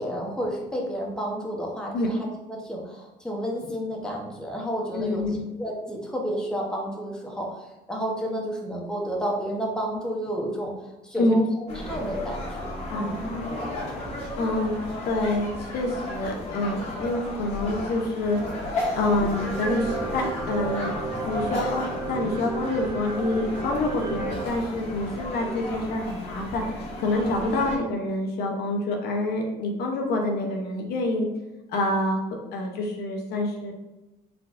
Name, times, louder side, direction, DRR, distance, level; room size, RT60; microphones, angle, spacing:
voice 1, 0.0-5.2 5.6-13.4, equal, 5° left, -2 dB, 1.0 m, -31 dB
voice 2, 5.0-5.4 11.2-11.4 12.9-13.7 14.4-14.7 15.1-18.4 18.9-20.9 21.2-31.3 31.7-32.2 32.5-33.7, left 2 dB, 70° left, 1 dB, 0.9 m, -27 dB
sound 1, 11.7-27.8, left 1 dB, 40° left, 1.5 m, -34 dB
sound 2, 19.3-24.5, right 4 dB, 25° right, 0.9 m, -34 dB
4.4 x 3.9 x 2.5 m, 1.0 s
cardioid pair, 110°, 17 cm